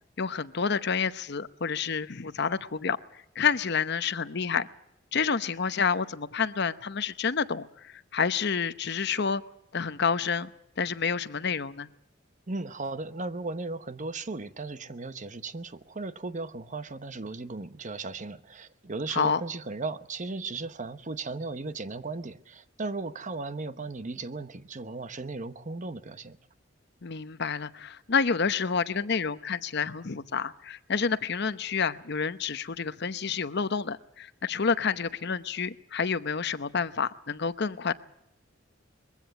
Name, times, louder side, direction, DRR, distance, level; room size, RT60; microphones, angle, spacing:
voice 1, 0.2-3.0 3.3-4.7 5.1-9.4 9.7-10.5 10.8-11.9 19.1-19.4 27.0-37.9, left 5 dB, 60° left, 0.9 m, -29 dB
voice 2, 12.5-26.4, right 3 dB, 40° right, 0.9 m, -36 dB
22.0 x 15.5 x 8.2 m
head